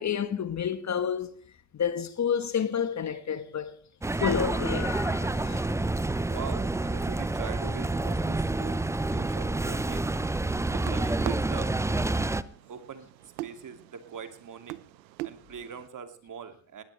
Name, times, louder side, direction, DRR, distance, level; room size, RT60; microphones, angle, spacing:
voice 1, 0.0-1.4 1.7-3.7 4.2-5.8, left 8 dB, 35° left, 1.4 m, -30 dB
sound 1, 4.0-12.4, right 2 dB, 5° right, 0.6 m, -28 dB
voice 2, 6.2-10.1 10.7-11.7 12.7-13.1 13.4-14.8 15.2-16.8, right 7 dB, 40° right, 2.6 m, -42 dB
sound 2, 10.3-15.9, right 17 dB, 80° right, 0.8 m, -42 dB
19.5 x 18.0 x 3.3 m
hypercardioid pair, 70°, 50 cm